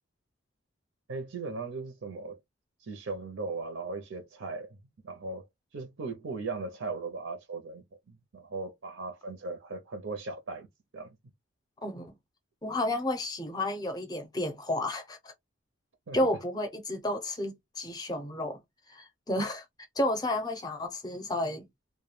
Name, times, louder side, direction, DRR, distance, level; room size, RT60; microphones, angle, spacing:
voice 1, 1.1-2.4 2.8-4.8 5.0-10.7 10.9-11.2 16.1-16.2, right 3 dB, 70° right, 0.6 m, -38 dB
voice 2, 11.8-12.1 12.6-15.3 16.1-18.6 18.9-19.6 20.0-21.7, left 1 dB, 20° left, 0.5 m, -31 dB
2.2 x 2.1 x 3.1 m
head